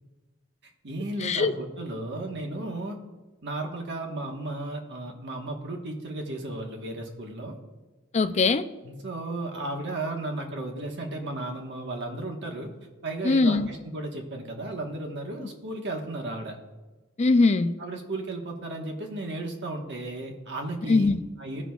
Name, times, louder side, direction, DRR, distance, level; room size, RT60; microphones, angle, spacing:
voice 1, 0.6-3.0 3.4-7.6 8.8-12.7 13.0-16.6 17.8-21.1 21.4-21.6, right 2 dB, 55° right, 2 dB, 1.4 m, -34 dB
voice 2, 1.2-1.5 8.1-8.6 13.2-13.7 17.2-17.7 20.9-21.2, left 3 dB, 30° left, 10 dB, 0.4 m, -21 dB
16.0 x 6.0 x 2.4 m, 1.2 s
head